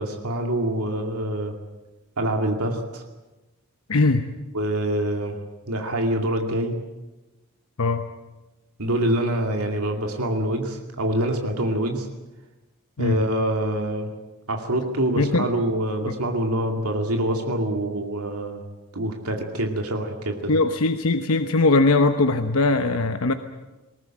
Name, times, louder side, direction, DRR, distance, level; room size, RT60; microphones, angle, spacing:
voice 1, 0.0-1.6 2.2-3.0 4.5-5.4 5.7-6.8 8.8-12.1 13.0-14.1 14.5-18.6 18.9-20.6, right 1 dB, 85° right, 3 dB, 2.4 m, -25 dB
voice 2, 3.9-4.3 7.8-8.0 13.0-13.2 15.2-15.5 16.1-16.2 20.5-23.3, left 3 dB, 80° left, 8 dB, 1.0 m, -20 dB
21.0 x 18.5 x 8.9 m, 1.1 s
head